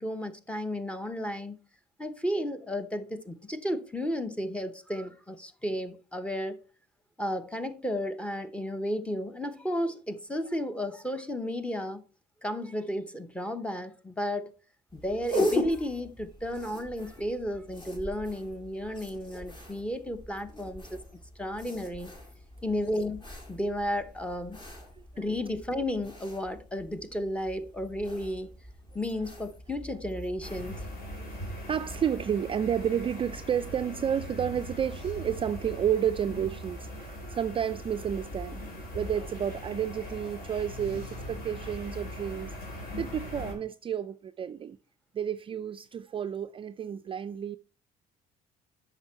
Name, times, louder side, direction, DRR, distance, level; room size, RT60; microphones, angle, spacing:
voice 1, 0.0-1.6 2.0-6.6 7.2-12.0 12.4-14.5 14.9-21.0 21.4-22.1 22.6-23.2 23.5-24.6 25.2-28.5 28.9-30.8, left 1 dB, 5° left, 0.8 m, -33 dB
sound 1, 14.9-30.9, left 1 dB, 30° left, 2.3 m, -39 dB
sound 2, 30.4-43.5, equal, 60° left, 4.0 m, -40 dB
voice 2, 31.1-42.5 43.0-44.8 45.1-47.6, right 9 dB, 30° right, 0.3 m, -31 dB
8.0 x 5.9 x 4.3 m
cardioid pair, 110°, 17 cm